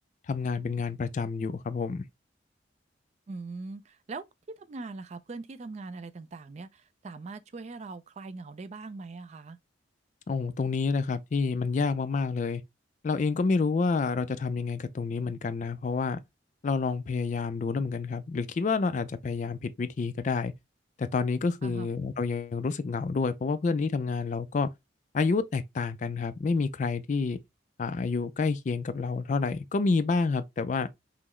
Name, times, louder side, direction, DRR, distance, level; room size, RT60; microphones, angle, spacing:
voice 1, 0.3-2.0 10.3-12.6 13.0-16.2 16.6-20.5 21.0-24.7 25.1-27.4 27.8-30.9, left 4 dB, 40° left, 0.3 m, -28 dB
voice 2, 3.3-4.2 4.6-9.6 21.6-21.9, right 3 dB, 35° right, 0.3 m, -41 dB
5.6 x 2.0 x 3.1 m
head